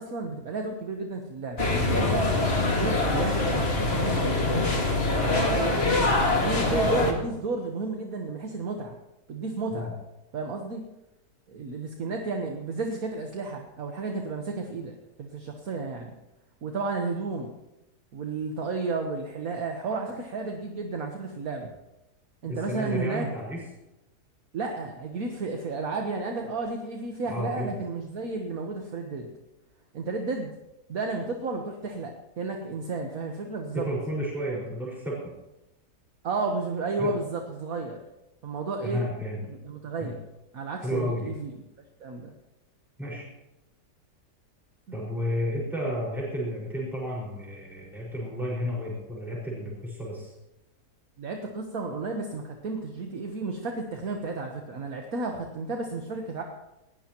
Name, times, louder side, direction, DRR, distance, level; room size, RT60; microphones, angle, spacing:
voice 1, 0.0-2.3 2.6-5.0 5.4-5.9 6.3-9.0 9.3-9.9 10.3-10.8 11.5-16.1 16.6-17.5 18.1-21.7 22.4-23.3 24.5-29.3 29.9-30.5 30.9-33.9 36.2-38.0 38.4-39.0 39.5-40.2 40.5-41.5 42.0-42.3 44.9-45.0 51.2-56.4, right 3 dB, 60° right, 2 dB, 1.6 m, -32 dB
sound 1, 1.6-7.1, left 2 dB, 35° left, 2.2 m, -24 dB
voice 2, 22.5-23.6 27.3-27.7 33.7-35.3 37.0-37.1 38.8-39.4 40.0-40.1 40.8-41.3 43.0-43.3 44.9-50.3, equal, ahead, -5 dB, 5.1 m, -32 dB
19.5 x 16.5 x 3.0 m, 0.95 s
omnidirectional pair, 1.8 m